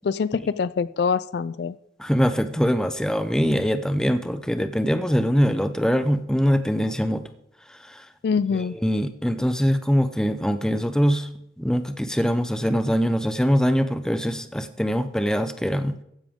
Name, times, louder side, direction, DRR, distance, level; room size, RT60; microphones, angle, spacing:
voice 1, 0.0-1.7 8.2-8.8, left 5 dB, 60° left, 16 dB, 0.3 m, -24 dB
voice 2, 2.0-7.2 7.7-8.1 8.5-11.3 11.6-16.0, equal, 5° left, 10 dB, 0.6 m, -23 dB
14.5 x 10.0 x 3.6 m, 0.75 s
head